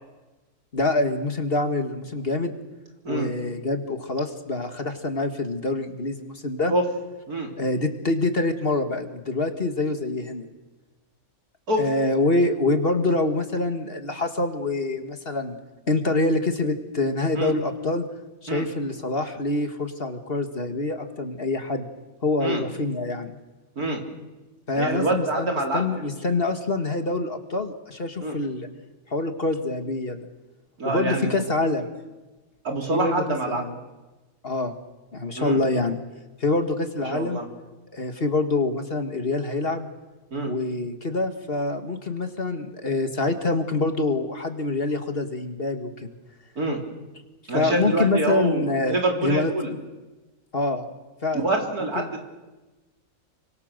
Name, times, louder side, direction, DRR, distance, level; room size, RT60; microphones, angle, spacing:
voice 1, 0.7-2.6 3.1-6.7 7.6-10.5 11.8-15.6 15.9-18.0 18.4-21.9 22.2-23.4 24.7-28.7 29.1-30.2 30.8-31.9 32.9-33.7 34.4-34.7 35.1-36.0 36.4-37.4 37.9-39.9 40.5-45.9 47.5-49.8 50.5-50.9 51.2-51.4 52.0-52.1, left 2 dB, 40° left, 7 dB, 1.9 m, -25 dB
voice 2, 24.7-26.0 28.2-28.4 30.8-31.4 32.6-33.6 35.4-35.6 37.1-37.5 40.3-40.5 46.6-46.8 47.5-49.7 51.3-52.2, right 2 dB, 85° right, 2 dB, 4.2 m, -26 dB
28.0 x 25.0 x 6.7 m, 1.1 s
omnidirectional pair, 1.6 m